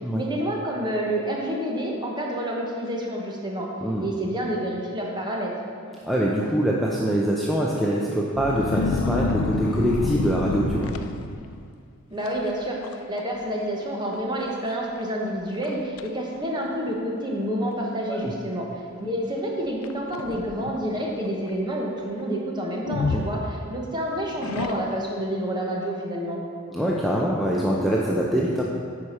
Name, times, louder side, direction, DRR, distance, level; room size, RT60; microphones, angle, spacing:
voice 1, 0.1-3.7 4.0-5.5 12.1-18.7 19.0-26.4, equal, 20° right, -2 dB, 1.1 m, -28 dB
voice 2, 6.0-11.0 18.1-18.3 23.1-23.2 26.7-28.6, equal, ahead, -4 dB, 0.5 m, -24 dB
sound 1, 8.3-11.6 12.3-12.5 12.8-13.3 13.5-13.6 14.4-14.5 15.0-15.1 15.6-16.1 16.9-17.0 19.8-20.8 22.9-23.9 24.4-25.2, left 3 dB, 75° left, 0.4 m, -28 dB
9.1 x 4.9 x 5.5 m, 2.2 s
head